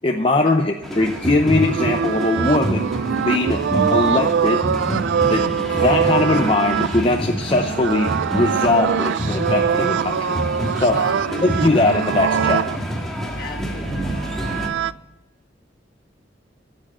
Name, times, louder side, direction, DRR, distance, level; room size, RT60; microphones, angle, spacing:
voice 1, 0.0-3.6 3.9-4.6 5.3-10.4 10.8-11.0 11.4-12.7, left 2 dB, 30° left, 4 dB, 0.7 m, -20 dB
sound 1, 0.8-14.7, right 1 dB, ahead, 1.8 m, -27 dB
sound 2, 1.0-12.8 13.9-14.9, right 7 dB, 85° right, 0.3 m, -23 dB
voice 2, 10.9-11.8 13.4-14.3, left 2 dB, 55° left, 2 dB, 2.3 m, -37 dB
13.5 x 7.7 x 7.2 m, 0.97 s
head